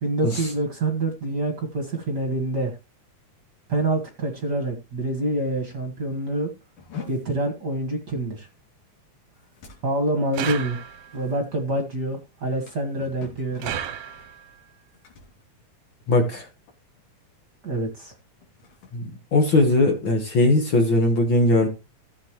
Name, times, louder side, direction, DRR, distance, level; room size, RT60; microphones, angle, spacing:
voice 1, 0.0-2.8 3.7-6.5 7.1-8.5 9.8-10.8 11.1-13.8 17.6-18.1, right 1 dB, 40° right, 3 dB, 1.9 m, -26 dB
sound 1, 6.8-16.4 16.7-17.1 17.4-17.7 18.3-20.2, left 6 dB, 90° left, 4.2 m, -46 dB
sound 2, 10.3-11.3 13.6-14.6, right 9 dB, 70° right, 1.9 m, -33 dB
voice 2, 16.1-16.5 18.9-21.7, left 2 dB, 45° left, 4 dB, 2.0 m, -20 dB
15.5 x 7.6 x 3.1 m, 0.26 s
omnidirectional pair, 3.4 m